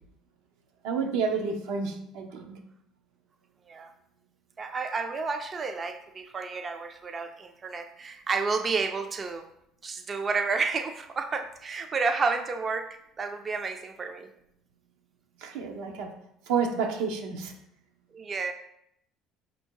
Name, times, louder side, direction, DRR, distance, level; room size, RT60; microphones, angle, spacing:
voice 1, 0.8-2.6 15.4-16.1 16.5-17.5, right 5 dB, 85° right, 4 dB, 0.7 m, -30 dB
voice 2, 4.6-9.5 9.8-12.8 13.2-14.3 18.1-18.5, right 4 dB, 30° right, 7 dB, 0.3 m, -30 dB
4.4 x 2.7 x 4.5 m, 0.75 s
cardioid pair, 110°, 0 cm